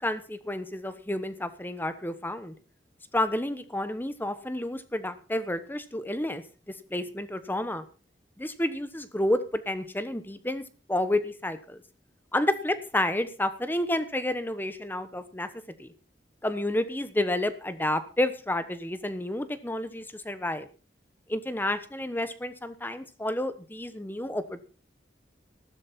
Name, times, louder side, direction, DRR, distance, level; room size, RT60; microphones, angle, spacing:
voice 1, 0.0-2.5 3.1-6.4 6.7-7.8 8.4-11.8 12.3-15.5 15.8-15.9 16.4-20.7 21.3-24.6, left 1 dB, 10° left, 12 dB, 1.1 m, -30 dB
14.0 x 12.5 x 4.4 m, 0.36 s
head